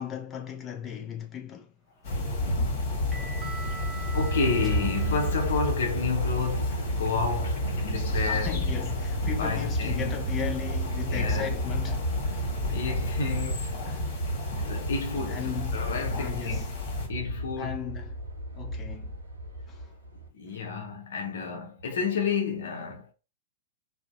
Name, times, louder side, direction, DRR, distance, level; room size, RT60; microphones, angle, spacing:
voice 1, 0.0-1.7 8.3-12.5 13.8-14.1 15.3-15.8 16.1-16.7 17.6-18.1 18.5-19.2 19.7-19.9, left 7 dB, 25° left, 0.5 m, -37 dB
sound 1, 2.0-17.1, left 1 dB, 45° left, 1.4 m, -32 dB
sound 2, 2.0-6.8, right 4 dB, 15° right, 0.7 m, -44 dB
voice 2, 4.1-8.6 9.4-10.3 11.1-11.5 12.7-13.7 14.5-16.6 17.0-17.8 20.3-23.1, left 5 dB, 65° left, 0.6 m, -31 dB
Aircraft, 4.1-20.3, right 1 dB, 90° right, 0.8 m, -33 dB
2.6 x 2.1 x 2.4 m
figure-of-eight pair, 110°, 0 cm